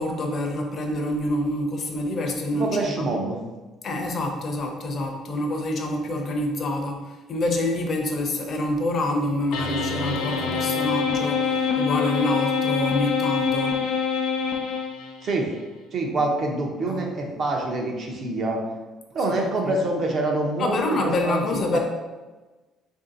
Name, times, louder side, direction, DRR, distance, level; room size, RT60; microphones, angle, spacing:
voice 1, 0.0-3.1 3.8-13.8 16.9-17.1 19.6-19.8 20.6-21.8, left 1 dB, 40° left, 2 dB, 0.6 m, -27 dB
voice 2, 2.5-3.4 15.2-15.5 15.9-18.6 19.1-21.8, right 2 dB, 40° right, 1 dB, 0.6 m, -26 dB
sound 1, 9.5-15.3, left 6 dB, 85° left, 0.5 m, -25 dB
3.3 x 2.6 x 3.8 m, 1.2 s
cardioid pair, 140°, 0 cm